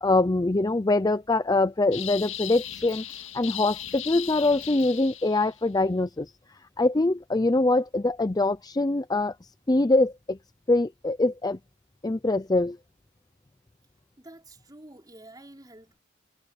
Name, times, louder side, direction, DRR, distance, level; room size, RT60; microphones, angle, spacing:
voice 1, 0.0-3.0 3.3-6.3 6.8-9.3 9.7-10.4 10.7-11.6 12.0-12.8, left 2 dB, 20° left, 0.6 m, -23 dB
sound 1, 1.9-5.6, left 11 dB, 70° left, 2.1 m, -37 dB
voice 2, 14.2-16.0, right 1 dB, 20° right, 4.4 m, -49 dB
head